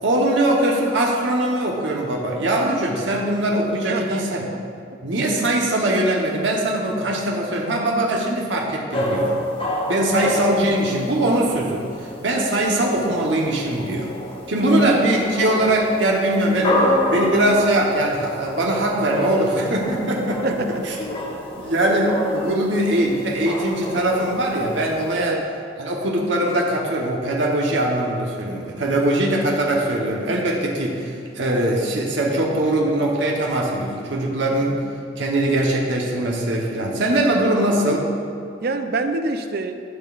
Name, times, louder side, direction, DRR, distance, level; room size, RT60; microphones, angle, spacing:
voice 1, 0.0-4.5 5.0-9.4 9.9-11.9 12.2-14.1 14.5-20.6 20.8-20.9 21.6-25.4 25.8-34.8 35.2-38.1, right 1 dB, 80° right, -2 dB, 1.1 m, -21 dB
voice 2, 3.9-4.6 4.9-5.0 14.6-14.9 20.4-20.8 21.3-21.6 25.2-25.5 38.6-39.8, right 3 dB, 55° right, 8 dB, 0.5 m, -27 dB
sound 1, 8.9-25.2, left 1 dB, 30° left, 1.0 m, -28 dB
13.0 x 6.0 x 2.5 m, 2.4 s
head